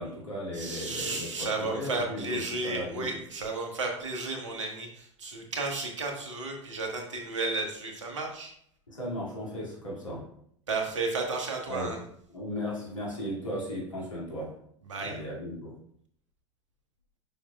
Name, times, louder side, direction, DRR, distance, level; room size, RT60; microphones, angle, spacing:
voice 1, 0.0-3.1 8.9-10.3 11.7-12.0 12.3-14.5 15.0-15.8, equal, 80° left, -4 dB, 2.3 m, -36 dB
voice 2, 0.5-8.5 10.7-12.0 14.9-15.2, right 3 dB, 75° right, 2 dB, 1.4 m, -33 dB
7.0 x 5.9 x 2.3 m, 0.67 s
figure-of-eight pair, 85°, 16 cm